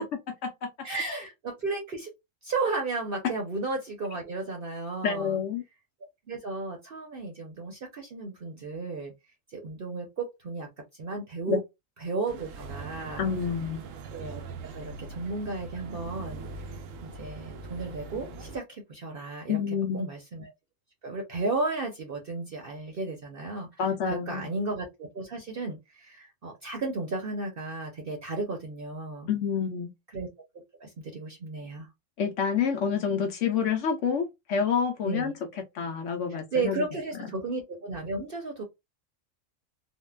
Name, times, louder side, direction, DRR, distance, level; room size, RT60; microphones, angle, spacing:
voice 1, 0.8-2.1 2.4-5.4 6.3-9.1 9.5-11.6 12.0-13.3 14.1-14.4 14.7-16.5 17.0-19.6 19.9-20.5 21.0-23.7 24.0-29.3 30.1-30.3 30.8-31.9 35.0-35.3 36.3-38.6, right 3 dB, 50° right, 0.9 m, -34 dB
voice 2, 5.0-5.6 11.5-11.6 13.2-13.8 19.5-20.1 23.8-24.5 29.3-29.9 32.2-36.8, left 6 dB, 70° left, 0.9 m, -28 dB
sound 1, 12.3-18.6, right 3 dB, 80° right, 1.0 m, -41 dB
3.6 x 2.1 x 2.2 m
omnidirectional pair, 1.4 m